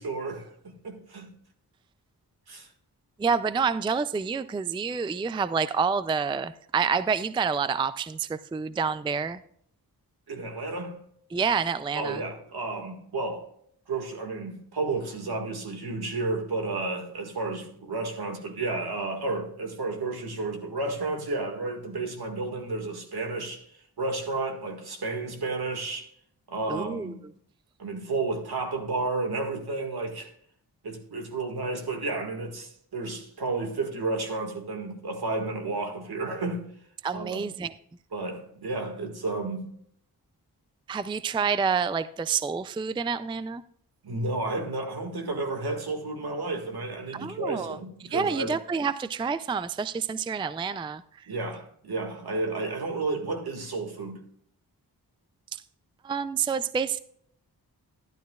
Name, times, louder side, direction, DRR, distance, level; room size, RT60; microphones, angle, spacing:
voice 1, 0.0-1.3 2.5-2.7 10.3-11.0 11.9-13.5 13.9-23.6 24.0-26.1 26.5-27.2 27.8-30.3 30.8-36.6 37.1-37.5 38.1-39.7 44.0-48.5 51.3-54.2, right 3 dB, 70° right, 1.9 m, -32 dB
voice 2, 3.2-9.4 11.3-12.2 26.7-27.2 37.0-37.7 40.9-43.6 47.1-47.8 48.1-51.3 55.5-55.6 56.0-57.0, right 5 dB, 15° right, 0.3 m, -28 dB
12.0 x 11.5 x 2.4 m
wide cardioid pair, 95°, 39 cm